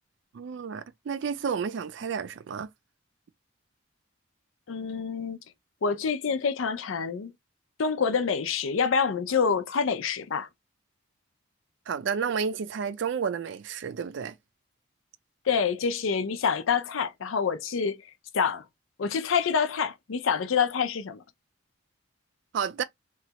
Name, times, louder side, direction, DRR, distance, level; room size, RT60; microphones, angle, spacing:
voice 1, 0.3-2.7 11.9-14.3 22.5-22.8, right 6 dB, 65° right, 0.3 m, -31 dB
voice 2, 4.7-5.4 5.8-7.3 7.8-10.5 15.5-18.0 18.3-18.6 19.0-21.2, left 6 dB, 80° left, 0.5 m, -27 dB
3.1 x 2.3 x 2.8 m
head